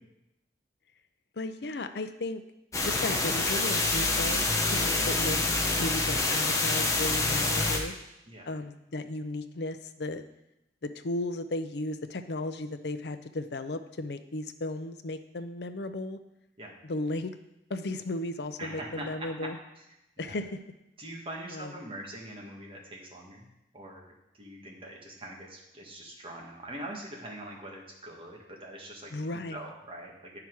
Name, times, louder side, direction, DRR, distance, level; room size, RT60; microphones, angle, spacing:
voice 1, 1.4-2.4 2.8-5.4 5.8-7.9 8.5-10.2 10.8-16.2 16.8-17.3 17.7-19.6 20.2-20.6 21.5-21.7 29.1-29.6, left 2 dB, 65° left, 9 dB, 0.6 m, -35 dB
sound 1, 2.7-7.8, left 2 dB, 20° left, 0.9 m, -27 dB
voice 2, 18.6-19.5 19.8-19.9 20.2-20.4 21.0-30.4, right 1 dB, 30° right, -2 dB, 1.7 m, -43 dB
9.7 x 5.8 x 4.7 m, 0.89 s
head